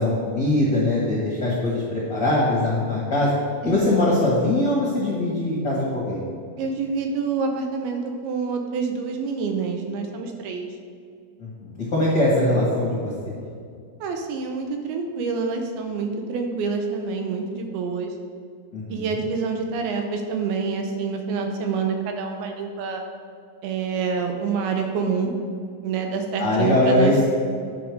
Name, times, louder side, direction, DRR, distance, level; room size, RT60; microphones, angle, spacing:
voice 1, 0.0-3.3 3.6-6.2 11.4-13.3 18.7-19.2 26.4-27.2, left 1 dB, 55° left, -7 dB, 1.2 m, -22 dB
voice 2, 3.6-4.2 6.6-10.7 14.0-18.1 18.9-23.0 23.6-25.3 25.8-27.2, right 5 dB, 80° right, 4 dB, 2.6 m, -27 dB
10.0 x 5.1 x 4.7 m, 2.3 s
omnidirectional pair, 4.5 m